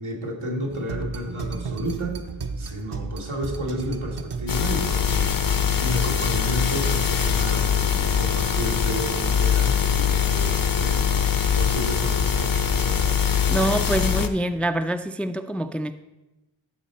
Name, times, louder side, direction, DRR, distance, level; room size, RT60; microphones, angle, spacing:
voice 1, 0.0-2.3 2.6-11.3 11.5-13.3, right 1 dB, 90° right, -1 dB, 1.7 m, -32 dB
sound 1, 0.7-4.9, right 4 dB, 60° right, 0.8 m, -33 dB
sound 2, 4.5-14.3, left 7 dB, 45° left, 0.7 m, -22 dB
voice 2, 13.5-15.9, right 1 dB, 5° left, 9 dB, 0.3 m, -25 dB
12.5 x 4.4 x 4.3 m, 1.0 s
wide cardioid pair, 45°, 48 cm